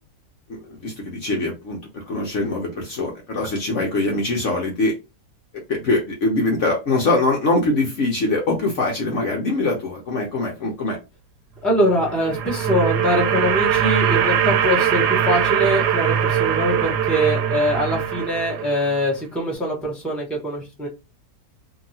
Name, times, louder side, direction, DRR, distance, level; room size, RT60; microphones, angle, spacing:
voice 1, 0.7-4.9 5.7-11.0, left 2 dB, 55° left, 0 dB, 1.0 m, -23 dB
voice 2, 11.6-20.9, equal, ahead, -2 dB, 0.8 m, -23 dB
sound 1, 11.9-19.0, right 9 dB, 85° right, 1.2 m, -21 dB
2.9 x 2.7 x 2.7 m, 0.27 s
omnidirectional pair, 1.7 m